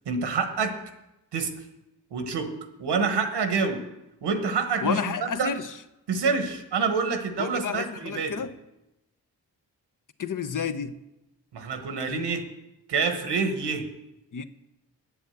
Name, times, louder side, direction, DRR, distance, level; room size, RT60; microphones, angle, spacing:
voice 1, 0.1-0.7 1.3-1.5 2.1-2.5 2.8-3.8 4.2-5.5 6.1-8.3 11.5-12.4 12.9-13.9, right 5 dB, 90° right, 7 dB, 1.2 m, -27 dB
voice 2, 4.8-5.8 7.4-8.5 10.2-11.0 12.1-12.3 14.3-14.5, left 6 dB, 50° left, 11 dB, 0.7 m, -31 dB
7.1 x 7.0 x 8.1 m, 0.92 s
cardioid pair, 45°, 40 cm